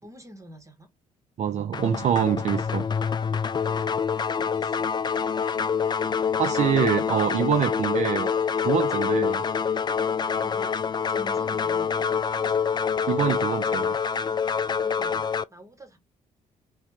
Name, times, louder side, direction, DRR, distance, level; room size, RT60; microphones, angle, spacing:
voice 1, 0.0-0.9 3.2-4.0 4.4-4.9 10.4-10.7 11.1-12.1 14.8-16.0, equal, 20° right, 1.8 m, -47 dB
voice 2, 1.4-2.9 6.4-9.4 13.1-14.0, right 9 dB, 45° right, 0.5 m, -25 dB
sound 1, 1.7-15.4, left 6 dB, 25° left, 0.4 m, -26 dB
3.3 x 2.9 x 3.5 m
hypercardioid pair, 45°, 17 cm